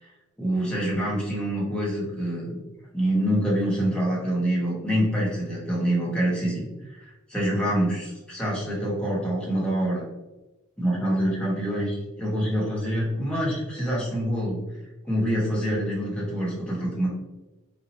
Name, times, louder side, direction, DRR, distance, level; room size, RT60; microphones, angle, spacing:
voice 1, 0.4-2.6 2.9-6.6 7.3-10.0 10.8-14.6 15.0-17.1, equal, 5° left, -5 dB, 1.3 m, -26 dB
4.8 x 2.9 x 2.8 m, 1.0 s
head